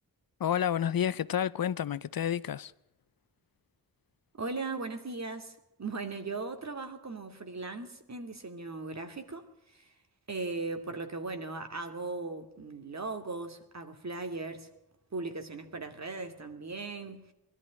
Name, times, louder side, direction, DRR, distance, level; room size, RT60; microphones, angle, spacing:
voice 1, 0.4-2.7, left 9 dB, 75° left, 0.7 m, -30 dB
voice 2, 4.3-9.9 10.3-14.7 15.1-17.3, right 3 dB, 50° right, 2.7 m, -38 dB
22.5 x 13.0 x 9.5 m
wide cardioid pair, 105°, 36 cm